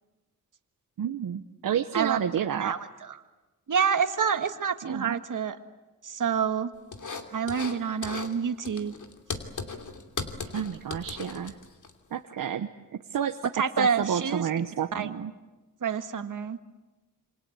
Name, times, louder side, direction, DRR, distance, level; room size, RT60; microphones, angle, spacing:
voice 1, 1.0-2.7 4.8-5.2 10.5-11.5 12.1-13.5 13.8-15.3, right 8 dB, 85° right, 7 dB, 1.0 m, -30 dB
voice 2, 2.5-3.2 3.7-5.6 6.0-6.7 7.3-8.9 13.5-14.5 14.9-15.1 15.8-16.6, right 6 dB, 65° right, 8 dB, 1.8 m, -28 dB
sound 1, 6.9-7.8 8.0-8.3 8.6-11.9, left 4 dB, 65° left, 2.9 m, -37 dB
27.5 x 26.0 x 8.1 m, 1.1 s
cardioid pair, 70°, 33 cm